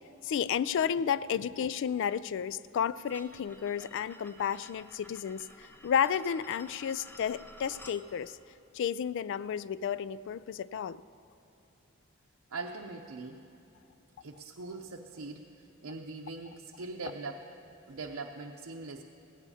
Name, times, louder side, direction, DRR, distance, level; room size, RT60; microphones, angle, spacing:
voice 1, 0.2-5.5 5.8-8.3 8.7-11.0, left 8 dB, 60° left, 18 dB, 0.3 m, -32 dB
sound 1, 3.1-8.0, equal, 10° left, 0.8 m, -53 dB
voice 2, 12.5-13.4 14.2-15.5 15.8-17.5 17.9-19.0, right 3 dB, 85° right, 0 dB, 0.7 m, -41 dB
17.5 x 17.0 x 2.8 m, 2.9 s
head